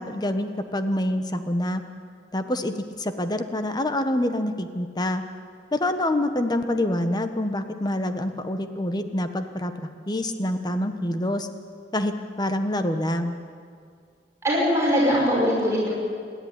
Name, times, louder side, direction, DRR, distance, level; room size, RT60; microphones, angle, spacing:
voice 1, 0.0-1.8 2.3-5.2 5.7-9.7 10.1-11.5 11.9-13.3, left 1 dB, 25° left, 8 dB, 1.3 m, -26 dB
voice 2, 14.4-15.9, equal, 15° right, -5 dB, 5.4 m, -21 dB
28.0 x 11.5 x 9.8 m, 2.2 s
head